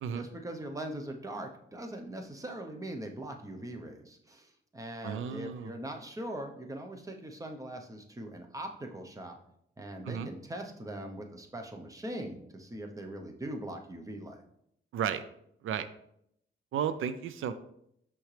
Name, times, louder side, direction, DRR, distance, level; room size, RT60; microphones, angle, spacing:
voice 1, 0.1-9.4 9.8-14.4, right 1 dB, 15° right, 4 dB, 0.8 m, -41 dB
voice 2, 5.0-5.7 10.0-10.3 14.9-15.2 15.6-15.9 16.7-17.5, right 8 dB, 90° right, 12 dB, 0.5 m, -33 dB
6.2 x 6.0 x 3.3 m, 0.73 s
wide cardioid pair, 125°, 20 cm